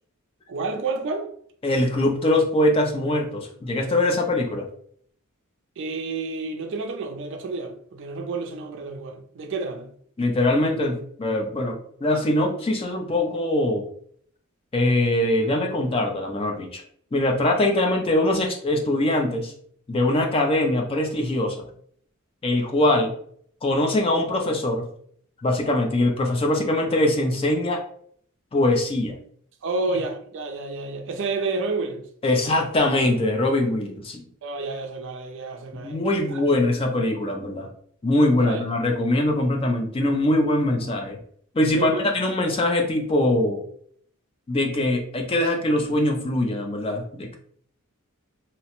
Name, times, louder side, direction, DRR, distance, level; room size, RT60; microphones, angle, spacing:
voice 1, 0.5-1.3 5.8-9.9 29.6-32.0 34.4-36.0 36.3-36.4 38.4-38.6 41.7-42.1, right 3 dB, 55° right, 0.4 m, -30 dB
voice 2, 1.6-4.7 10.2-13.8 14.7-16.8 17.1-19.5 19.9-21.6 22.4-23.1 23.6-24.9 25.4-27.8 28.5-29.2 32.2-34.2 35.8-37.7 38.0-41.2 41.5-43.6 44.5-47.4, left 1 dB, 25° left, 0.4 m, -22 dB
2.8 x 2.0 x 2.9 m
head